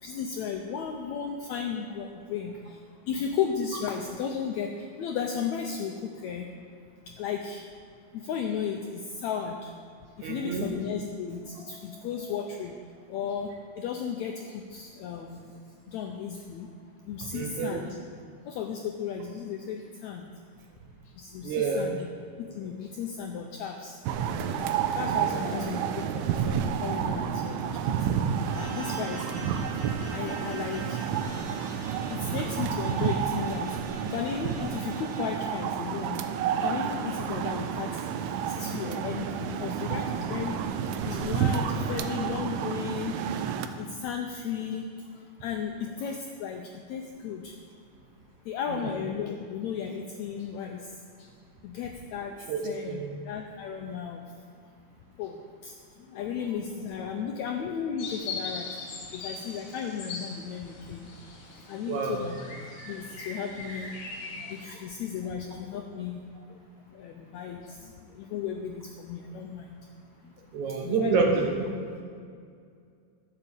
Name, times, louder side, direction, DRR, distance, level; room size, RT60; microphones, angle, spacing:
voice 1, 0.0-2.8 3.1-4.7 5.0-6.5 7.2-7.6 8.1-9.7 10.2-12.8 13.1-13.5 13.8-15.5 15.9-16.7 17.1-17.8 18.5-20.2 21.2-22.1 22.4-24.0 24.4-24.5 24.9-25.8 26.3-28.2 28.6-29.6 30.1-31.0 32.1-33.8 34.1-36.2 36.6-37.9 38.4-40.6 41.0-43.1 43.8-44.9 45.4-47.5 48.5-50.8 51.2-51.3 51.6-52.3 52.6-54.2 55.2-55.7 56.1-58.7 59.1-61.1 61.7-62.4 62.9-63.9 64.5-66.1 66.9-69.8 70.8-71.4, left 7 dB, 85° left, 3 dB, 1.6 m, -34 dB
voice 2, 10.2-10.7 17.3-17.8 21.4-21.9 25.2-25.5 48.7-48.9 52.5-53.1 61.8-62.3 70.5-71.7, right 4 dB, 65° right, 1 dB, 2.3 m, -28 dB
sound 1, 24.0-43.7, right 8 dB, 90° right, 2.3 m, -30 dB
sound 2, 28.4-35.3, right 2 dB, 45° right, 2.9 m, -46 dB
sound 3, 58.0-64.7, left 3 dB, 65° left, 3.5 m, -40 dB
12.0 x 6.9 x 7.1 m, 2.2 s
omnidirectional pair, 4.0 m